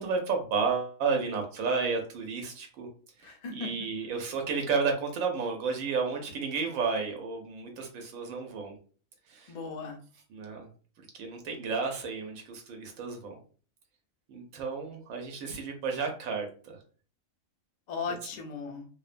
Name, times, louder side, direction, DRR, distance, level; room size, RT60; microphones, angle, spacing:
voice 1, 0.0-2.9 3.2-8.8 9.3-9.5 10.3-10.7 11.0-13.4 14.3-16.8, right 5 dB, 90° right, 3 dB, 1.0 m, -32 dB
voice 2, 3.2-3.7 9.5-10.0 17.9-18.9, left 5 dB, 70° left, 1 dB, 0.4 m, -37 dB
2.6 x 2.1 x 2.4 m, 0.41 s
omnidirectional pair, 1.4 m